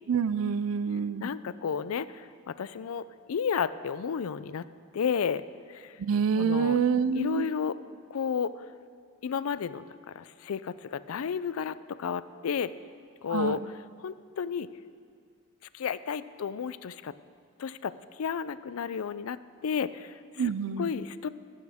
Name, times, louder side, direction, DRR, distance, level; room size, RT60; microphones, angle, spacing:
voice 1, 0.1-1.3 6.0-7.5 13.3-13.6 20.4-20.9, right 6 dB, 70° right, 15 dB, 0.4 m, -27 dB
voice 2, 1.2-4.6 4.9-5.9 6.4-6.8 7.1-7.8 8.1-8.5 9.2-9.8 10.2-12.7 13.2-13.6 14.0-14.7 15.7-17.1 17.6-17.9 18.2-19.4 19.6-20.5 20.8-21.3, left 7 dB, 85° left, 16 dB, 0.4 m, -32 dB
20.5 x 8.5 x 3.5 m, 2.3 s
head